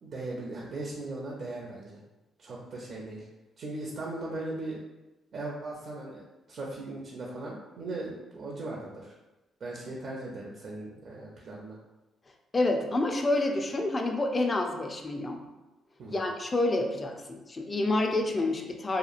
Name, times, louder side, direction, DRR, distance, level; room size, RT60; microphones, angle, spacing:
voice 1, 0.0-2.0 2.4-3.3 3.6-4.8 5.3-6.2 6.5-9.1 9.6-11.8 16.0-16.3, right 2 dB, 55° right, -3 dB, 0.5 m, -38 dB
voice 2, 12.5-15.4 16.1-19.0, left 2 dB, 30° left, 3 dB, 0.4 m, -28 dB
2.9 x 2.3 x 2.4 m, 1.1 s
cardioid pair, 90°, 0 cm